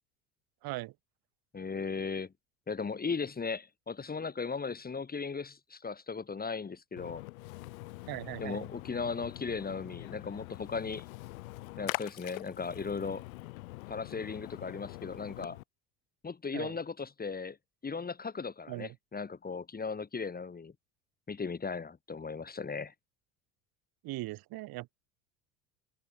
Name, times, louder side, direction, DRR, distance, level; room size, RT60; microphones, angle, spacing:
voice 1, 0.6-0.9 8.1-8.7 16.5-16.8 18.7-18.9 24.0-24.9, right 19 dB, 55° right, 3.0 m, -39 dB
voice 2, 1.5-2.3 2.7-7.2 8.4-11.1 11.8-13.2 13.9-15.6 16.2-17.6 17.8-20.7 21.3-22.9, left 5 dB, 20° left, 2.1 m, -37 dB
Splash splatter, 7.0-15.6, left 22 dB, 75° left, 7.1 m, -44 dB
hypercardioid pair, 75°, 42 cm